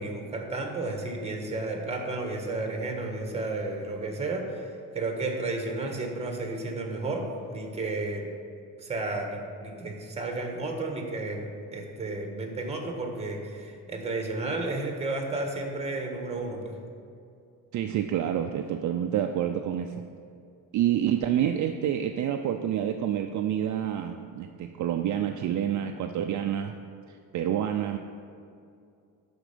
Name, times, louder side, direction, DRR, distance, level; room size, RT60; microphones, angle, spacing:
voice 1, 0.0-8.3 8.8-16.8, right 2 dB, 15° right, 2 dB, 1.5 m, -32 dB
voice 2, 17.7-20.1 20.7-26.8 27.1-28.0, right 10 dB, 55° right, 5 dB, 0.5 m, -28 dB
11.0 x 4.4 x 6.8 m, 2.4 s
cardioid pair, 130°, 36 cm